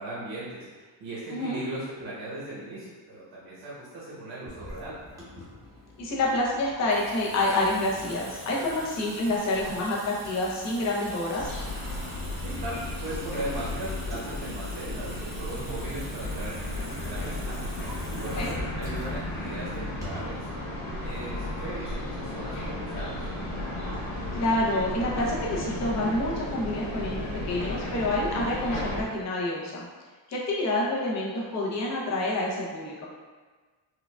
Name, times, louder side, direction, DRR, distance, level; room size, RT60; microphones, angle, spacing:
voice 1, 0.0-5.0 12.4-23.2, right 1 dB, 65° right, -8 dB, 1.0 m, -38 dB
Water tap faucet / Sink (filling or washing) / Drip, 4.5-20.4, equal, 5° right, 0.9 m, -43 dB
voice 2, 6.0-11.5 18.4-18.5 24.3-29.9 30.3-33.1, left 1 dB, 35° left, -4 dB, 0.7 m, -28 dB
sound 1, 11.4-29.0, left 1 dB, 70° left, 1.1 m, -34 dB
4.7 x 2.3 x 2.2 m, 1.4 s
cardioid pair, 150°, 45 cm